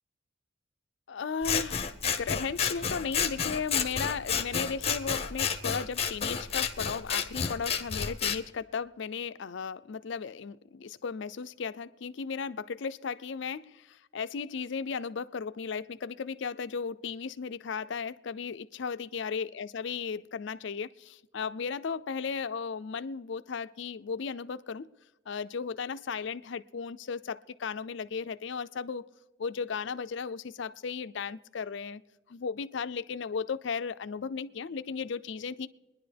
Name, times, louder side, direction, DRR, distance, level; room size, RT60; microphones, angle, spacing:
voice 1, 1.1-24.9 25.3-29.1 29.4-32.0 32.3-35.7, left 5 dB, 65° left, 0.4 m, -35 dB
Scissors, 1.4-8.4, left 6 dB, 30° left, 0.7 m, -31 dB
25.5 x 10.5 x 3.4 m
head